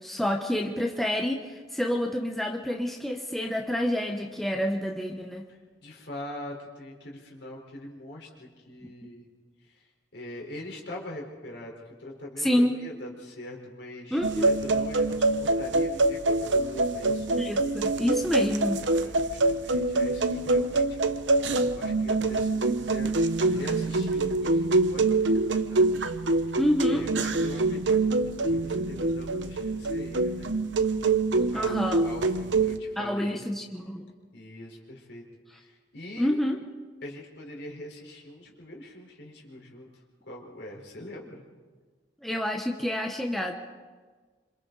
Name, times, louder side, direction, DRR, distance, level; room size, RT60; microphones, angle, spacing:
voice 1, 0.0-5.4 8.8-8.9 12.4-12.8 14.1-14.5 17.4-18.8 26.6-27.0 31.5-32.0 33.0-34.1 36.2-36.6 42.2-43.5, left 1 dB, ahead, 2 dB, 1.0 m, -28 dB
voice 2, 5.5-9.3 9.6-9.9 10.1-17.3 18.8-30.5 31.4-33.4 34.3-35.2 35.5-36.4 37.0-39.9 40.2-41.4, left 1 dB, 65° left, -1 dB, 4.4 m, -43 dB
sound 1, 14.2-32.8, right 2 dB, 85° right, 0.9 m, -25 dB
26.5 x 26.5 x 4.0 m, 1.4 s
head